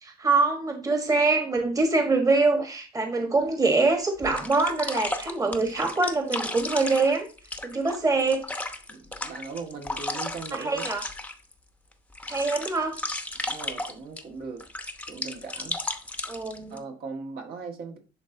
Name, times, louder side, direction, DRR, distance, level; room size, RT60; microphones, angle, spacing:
voice 1, 0.0-7.3 7.6-8.4 10.5-11.0 12.3-13.0 16.3-16.8, right 3 dB, 20° right, 4 dB, 1.3 m, -24 dB
sound 1, 3.5-3.6 4.2-11.5 11.9-14.2 14.6-16.8, left 2 dB, 10° left, 0.8 m, -34 dB
voice 2, 8.9-10.9 13.5-14.6 15.1-15.8 16.7-18.0, right 4 dB, 65° right, 2 dB, 1.7 m, -39 dB
10.5 x 3.9 x 2.7 m, 0.33 s
cardioid pair, 110°, 17 cm